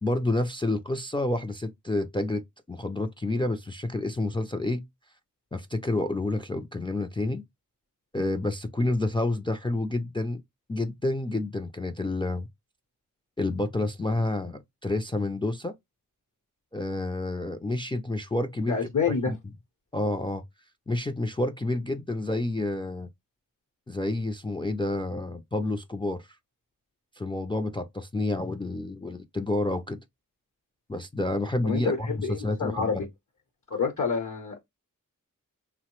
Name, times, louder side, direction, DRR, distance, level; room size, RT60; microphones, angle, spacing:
voice 1, 0.0-4.8 5.5-7.4 8.1-10.4 10.7-12.5 13.4-15.7 16.7-18.8 19.1-19.4 19.9-20.4 20.9-23.1 23.9-26.3 27.2-30.0 30.9-33.0, left 2 dB, 15° left, 0.3 m, -29 dB
voice 2, 18.7-19.3 31.6-33.1 33.7-34.6, left 5 dB, 65° left, 0.8 m, -28 dB
3.1 x 2.0 x 2.9 m
wide cardioid pair, 85°, 33 cm